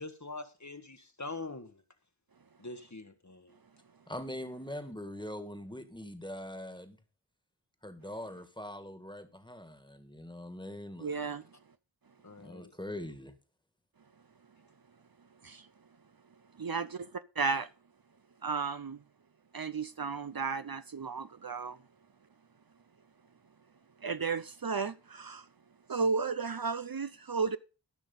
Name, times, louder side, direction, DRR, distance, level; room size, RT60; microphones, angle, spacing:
voice 1, 0.0-1.8 2.6-3.5 12.2-12.7, left 3 dB, 40° left, 1.4 m, -43 dB
voice 2, 4.1-7.0 7.8-11.3 12.4-13.4, left 1 dB, 10° left, 1.8 m, -42 dB
voice 3, 11.0-11.4 15.4-15.7 16.5-17.7 18.4-19.0 19.5-21.8 24.0-25.5 25.9-27.6, right 4 dB, 50° right, 0.7 m, -34 dB
14.5 x 6.1 x 5.5 m
wide cardioid pair, 40°, 45 cm